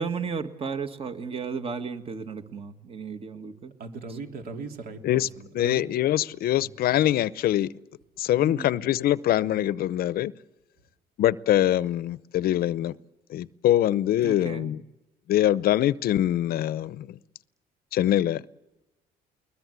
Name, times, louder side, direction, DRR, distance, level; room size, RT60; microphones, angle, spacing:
voice 1, 0.0-3.7 4.1-4.2 8.3-8.7 14.1-14.8, right 5 dB, 35° right, 2.0 m, -34 dB
voice 2, 3.8-5.8 6.5-6.6, right 4 dB, 60° right, 3.0 m, -39 dB
voice 3, 5.5-7.7 8.2-10.3 11.2-13.0 13.3-14.8 15.3-17.2 17.9-18.4, left 12 dB, 65° left, 0.7 m, -23 dB
21.5 x 20.5 x 8.2 m
cardioid pair, 110°, 17 cm